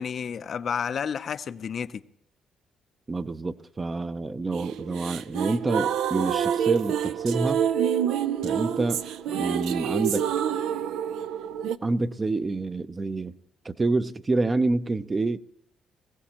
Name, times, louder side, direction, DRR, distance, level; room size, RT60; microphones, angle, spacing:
voice 1, 0.0-2.0, left 7 dB, 55° left, 0.5 m, -31 dB
voice 2, 3.1-7.7 8.4-9.1 9.3-10.3 11.8-13.3 13.6-15.4, right 3 dB, 25° right, 0.6 m, -27 dB
sound 1, 4.5-11.8, right 9 dB, 85° right, 0.5 m, -27 dB
21.5 x 15.5 x 2.9 m
cardioid pair, 90°, 0 cm